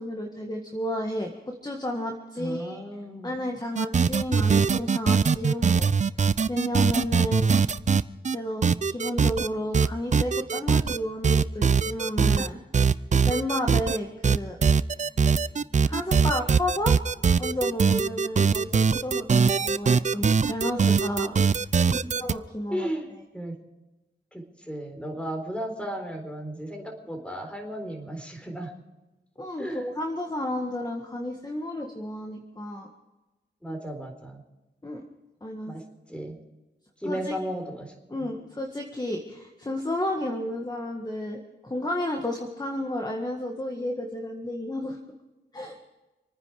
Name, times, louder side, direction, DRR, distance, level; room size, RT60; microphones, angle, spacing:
voice 1, 0.0-2.8 3.2-5.9 6.5-7.6 8.3-12.6 13.2-14.6 15.8-17.0 17.4-21.4 22.2-22.9 29.4-32.9 34.8-35.0 35.4-35.8 37.0-37.4 38.1-45.0 45.5-45.8, left 1 dB, 20° left, 2 dB, 1.8 m, -32 dB
voice 2, 2.4-3.3 21.9-22.1 22.7-23.6 24.3-28.7 29.6-29.9 33.6-34.4 35.6-36.4 37.0-38.3, equal, 5° left, 4 dB, 4.1 m, -35 dB
sound 1, 3.8-8.4 8.6-9.5 9.7-11.0 11.2-12.5 12.7-14.0 14.2-22.3, right 5 dB, 40° right, 0.5 m, -21 dB
27.0 x 9.8 x 5.0 m, 1.1 s
wide cardioid pair, 75°, 18 cm